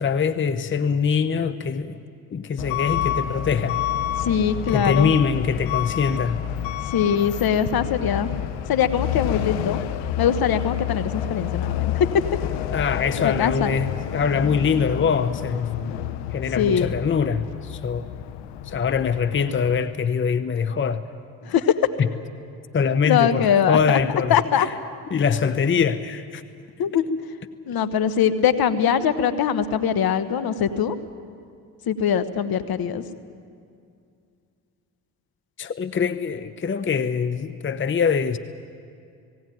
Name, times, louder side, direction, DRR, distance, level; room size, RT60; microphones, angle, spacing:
voice 1, 0.0-2.0 2.3-3.8 4.7-6.5 12.7-15.7 16.3-18.1 18.7-21.0 22.0-22.1 22.7-24.6 25.1-26.4 35.6-38.4, left 6 dB, 30° left, 0.8 m, -23 dB
Truck / Alarm, 2.6-19.8, left 11 dB, 80° left, 1.0 m, -29 dB
voice 2, 4.2-5.1 6.8-8.4 8.7-9.8 10.2-12.1 13.2-13.7 16.6-16.9 21.4-21.9 23.0-24.0 24.3-24.7 26.8-27.0 27.7-31.0 31.9-33.0, left 8 dB, 55° left, 1.2 m, -22 dB
18.0 x 17.5 x 9.2 m
hypercardioid pair, 60°, 42 cm